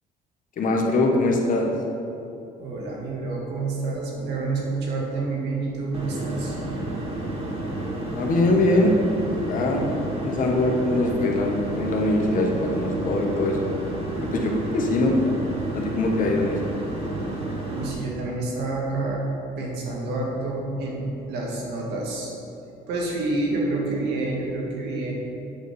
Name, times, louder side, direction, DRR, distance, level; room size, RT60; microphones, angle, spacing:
voice 1, 0.6-1.7 8.1-8.9 9.5-9.9 10.2-13.6 14.2-15.2 15.7-16.6, left 2 dB, 50° left, 0 dB, 1.4 m, -22 dB
voice 2, 2.6-6.6 17.7-19.2 19.6-22.3 22.9-25.1, right 2 dB, 85° right, -2 dB, 1.9 m, -28 dB
sound 1, 5.9-17.9, right 2 dB, 35° right, 1.6 m, -31 dB
8.8 x 4.2 x 6.9 m, 2.8 s
cardioid pair, 110°, 17 cm